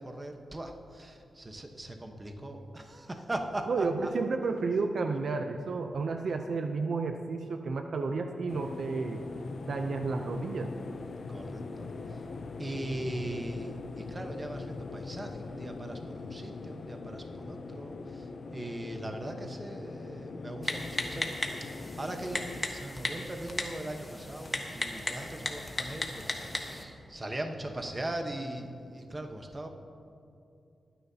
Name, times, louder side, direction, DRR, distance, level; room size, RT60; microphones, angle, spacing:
voice 1, 0.0-4.1 11.3-12.2 12.6-29.7, right 1 dB, 25° right, 4 dB, 1.1 m, -40 dB
voice 2, 3.7-9.2 9.7-10.7, right 4 dB, 65° right, 5 dB, 0.6 m, -31 dB
sound 1, 8.5-22.6, left 4 dB, 60° left, 0.6 m, -41 dB
Typing, 20.6-26.8, left 2 dB, 25° left, 1.2 m, -36 dB
21.0 x 9.9 x 2.9 m, 2.5 s
wide cardioid pair, 100°, 0 cm